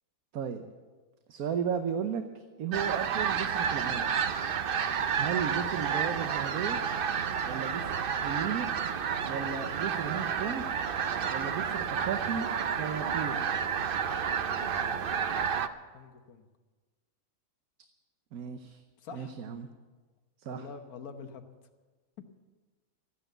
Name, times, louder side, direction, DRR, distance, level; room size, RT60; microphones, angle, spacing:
voice 1, 0.3-0.7 1.3-4.1 5.2-6.8 7.4-7.9 8.2-8.7 9.3-10.6 11.3-12.5 12.8-13.4 18.3-18.8 19.1-19.7 20.4-20.7, right 7 dB, 80° right, 7 dB, 1.3 m, -34 dB
sound 1, 2.7-15.7, right 7 dB, 55° right, 0.7 m, -30 dB
voice 2, 4.9-5.2 14.4-15.3 15.9-16.5 19.0-19.3 20.4-21.5, left 6 dB, 85° left, 7 dB, 1.6 m, -47 dB
13.5 x 10.0 x 8.0 m, 1.3 s
omnidirectional pair, 1.5 m